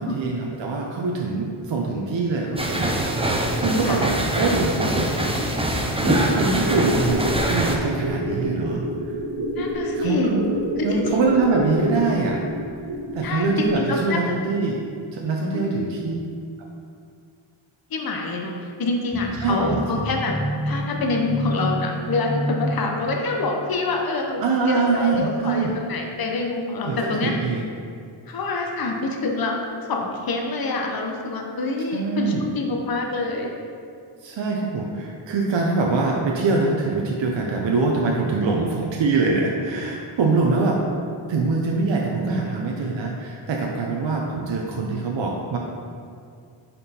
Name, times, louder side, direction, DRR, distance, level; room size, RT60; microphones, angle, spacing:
voice 1, 0.0-5.1 6.0-8.8 9.9-10.4 10.8-12.4 13.1-14.8 15.1-16.1 19.4-19.8 24.4-25.7 26.9-27.6 31.9-32.4 34.2-40.8 41.3-45.6, right 3 dB, 65° right, -1 dB, 0.7 m, -24 dB
sound 1, 2.6-7.8, right 1 dB, 10° right, 0.5 m, -23 dB
sound 2, 6.5-13.3 13.6-13.7, equal, 85° right, 1.4 m, -28 dB
voice 2, 9.6-10.3 10.8-11.0 13.2-14.2 15.5-15.8 17.9-20.3 20.6-27.3 28.3-29.6 29.9-33.5, left 3 dB, 50° left, 1 dB, 0.7 m, -26 dB
sound 3, 19.1-23.7, equal, 10° left, 0.8 m, -29 dB
5.2 x 4.3 x 4.2 m, 2.3 s
wide cardioid pair, 110°, 48 cm